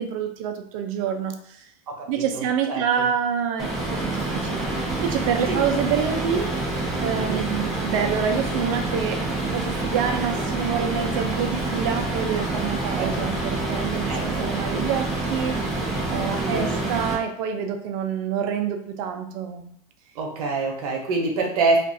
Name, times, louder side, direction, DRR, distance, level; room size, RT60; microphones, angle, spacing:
voice 1, 0.0-1.7 2.1-4.7 5.0-6.5 7.0-9.2 9.5-15.6 16.1-19.7, right 7 dB, 60° right, 5 dB, 0.5 m, -27 dB
voice 2, 1.9-2.4 2.7-2.8 5.5-5.6 7.2-7.5 13.0-13.1 14.1-14.9 16.4-16.7 20.2-21.8, right 3 dB, 80° right, 1 dB, 0.8 m, -26 dB
sound 1, 3.6-17.1, right 2 dB, ahead, 0.8 m, -27 dB
2.5 x 2.3 x 2.5 m, 0.64 s
supercardioid pair, 115°, 19 cm